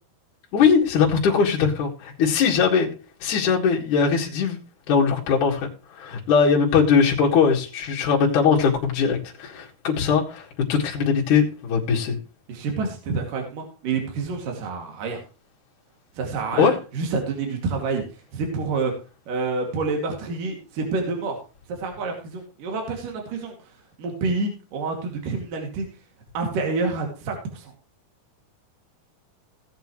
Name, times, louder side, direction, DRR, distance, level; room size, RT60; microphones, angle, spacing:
voice 1, 0.5-2.9 3.2-4.6 4.9-12.2 16.5-16.7, left 6 dB, 55° left, -3 dB, 3.2 m, -20 dB
voice 2, 12.5-15.2 16.2-16.7 16.9-18.1 18.3-18.9 19.3-21.4 21.7-23.5 24.0-25.9 26.3-27.7, right 4 dB, 60° right, 2 dB, 3.8 m, -28 dB
17.5 x 8.1 x 3.1 m, 0.35 s
omnidirectional pair, 4.5 m